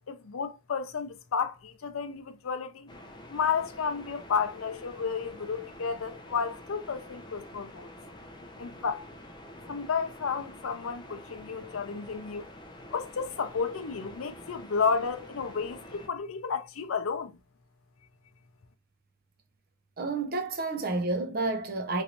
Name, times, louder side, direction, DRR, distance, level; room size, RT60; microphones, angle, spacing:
voice 1, 0.1-2.9 3.3-7.9 8.6-9.1 9.7-12.4 12.9-17.3, left 5 dB, 85° left, 0.5 m, -32 dB
sound 1, 2.9-16.1, left 1 dB, 20° left, 0.4 m, -48 dB
voice 2, 20.0-22.0, right 3 dB, 45° right, 0.6 m, -30 dB
3.1 x 2.6 x 2.8 m
head